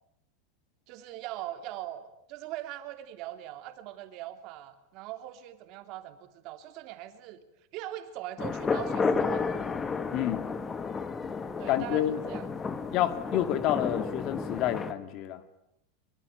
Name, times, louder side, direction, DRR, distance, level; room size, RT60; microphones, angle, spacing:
voice 1, 0.9-7.4 7.7-9.7 11.6-12.5, right 13 dB, 40° right, 8 dB, 3.0 m, -41 dB
sound 1, 8.4-14.9, left 4 dB, 15° left, 1.4 m, -32 dB
voice 2, 10.1-10.5 11.7-12.2 12.9-15.4, left 12 dB, 40° left, 11 dB, 2.3 m, -29 dB
24.0 x 24.0 x 9.3 m, 0.81 s
supercardioid pair, 160°, 0 cm